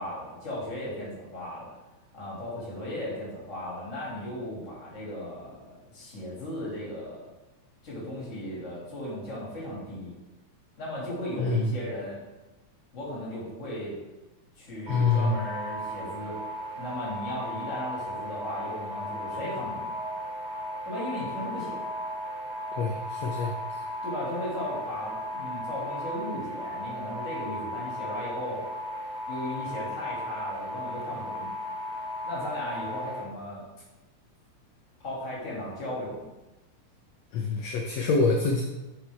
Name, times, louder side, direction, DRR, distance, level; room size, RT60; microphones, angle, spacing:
voice 1, 0.0-1.7 2.1-7.3 7.8-10.1 10.8-12.2 12.9-13.9 14.6-16.4 16.7-19.9 20.8-21.8 24.0-28.6 29.3-31.5 32.2-33.6 35.0-36.3, left 1 dB, 25° left, -6 dB, 2.3 m, -36 dB
voice 2, 11.4-11.7 14.9-15.4 22.8-23.5 37.3-38.6, left 4 dB, 75° left, 1 dB, 1.6 m, -25 dB
sound 1, 14.9-33.2, equal, 50° right, 2.1 m, -36 dB
9.4 x 5.0 x 3.5 m, 1.1 s
omnidirectional pair, 3.6 m